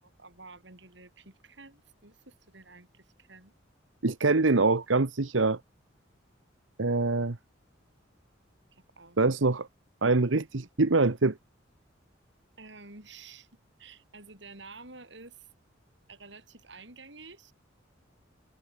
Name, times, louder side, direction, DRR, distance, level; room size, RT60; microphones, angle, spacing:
voice 1, 0.0-3.5 8.7-9.2 12.6-15.5 16.1-17.5, right 3 dB, 65° right, 6.8 m, -50 dB
voice 2, 4.0-5.6 6.8-7.4 9.2-9.7 10.0-11.4, right 3 dB, 90° right, 1.1 m, -24 dB
head